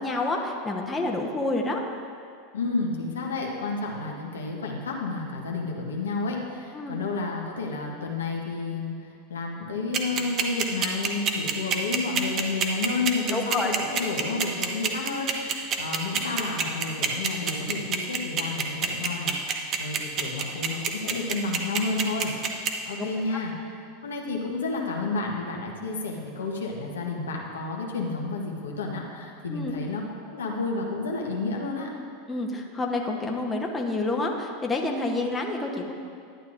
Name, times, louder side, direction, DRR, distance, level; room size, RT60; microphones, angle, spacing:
voice 1, 0.0-1.8 6.7-7.0 13.3-13.7 23.0-23.4 29.5-29.7 32.3-35.9, left 2 dB, 15° left, 0 dB, 1.0 m, -28 dB
voice 2, 2.5-23.5 24.0-30.0 30.3-31.9, left 3 dB, 90° left, -1 dB, 1.1 m, -31 dB
sound 1, 9.9-22.7, right 7 dB, 40° right, 0.9 m, -25 dB
11.5 x 9.2 x 2.6 m, 2.3 s
hypercardioid pair, 95°, 0 cm